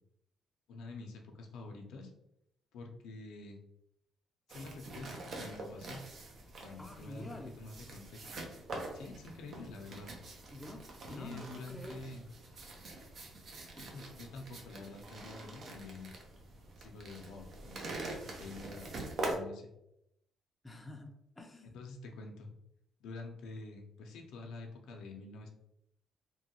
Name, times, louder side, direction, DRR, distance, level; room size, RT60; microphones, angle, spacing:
voice 1, 0.7-2.1 2.7-3.6 4.5-6.0 6.6-8.5 8.9-10.1 11.1-12.3 13.7-16.1 16.8-18.9 19.2-19.7 21.7-22.5 23.0-25.5, left 3 dB, 90° left, 2 dB, 0.5 m, -47 dB
sound 1, 4.5-19.3, right 2 dB, 55° right, 0.7 m, -45 dB
voice 2, 6.8-7.6 10.5-12.0 13.7-13.9 20.6-21.9, left 1 dB, 15° left, 3 dB, 0.5 m, -48 dB
2.9 x 2.2 x 2.8 m, 0.80 s
cardioid pair, 90°, 0 cm